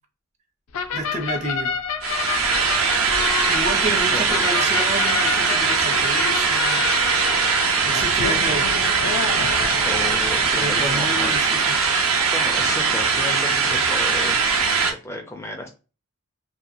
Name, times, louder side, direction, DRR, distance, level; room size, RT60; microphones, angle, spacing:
sound 1, 0.7-11.1, left 6 dB, 80° left, 0.4 m, -29 dB
voice 1, 0.9-1.7 3.5-7.5 7.8-8.7 10.5-11.8, right 1 dB, 35° right, 0.6 m, -30 dB
sound 2, 2.0-14.9, right 5 dB, 75° right, 0.7 m, -21 dB
voice 2, 9.8-11.3 12.3-14.4 14.8-15.7, left 2 dB, 10° left, 0.4 m, -32 dB
2.8 x 2.2 x 2.5 m
head